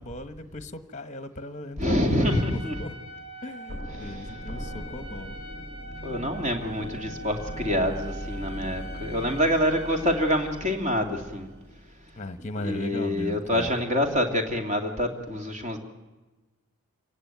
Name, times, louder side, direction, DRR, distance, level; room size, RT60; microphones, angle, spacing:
voice 1, 0.0-3.0 3.4-5.4 6.6-7.1 12.2-13.8, left 2 dB, 30° left, 11 dB, 1.1 m, -37 dB
voice 2, 1.8-2.8 4.0-4.3 6.0-11.5 12.4-15.8, equal, 30° right, 3 dB, 2.5 m, -26 dB
Trumpet, 2.2-10.6, right 1 dB, 70° right, 3.6 m, -43 dB
sound 1, 3.7-12.5, equal, 45° right, 1.6 m, -40 dB
27.0 x 16.5 x 9.4 m, 1.2 s
head